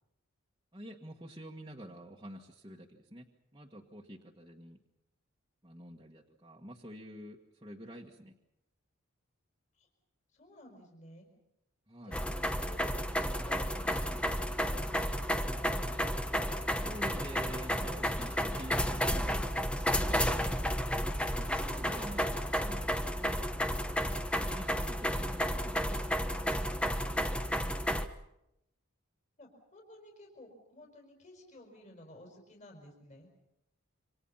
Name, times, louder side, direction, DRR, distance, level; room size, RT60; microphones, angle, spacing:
voice 1, 0.7-3.2 3.5-4.8 5.6-8.3 11.9-12.2 16.8-20.7 21.2-23.5 24.3-27.1, equal, 20° right, -3 dB, 1.6 m, -48 dB
voice 2, 10.3-11.3 12.0-13.1 13.4-15.2 29.4-33.3, left 1 dB, 35° left, 2 dB, 5.0 m, -54 dB
sound 1, 12.1-28.1, equal, 5° left, 1.0 m, -32 dB
27.5 x 25.5 x 5.7 m, 0.82 s
head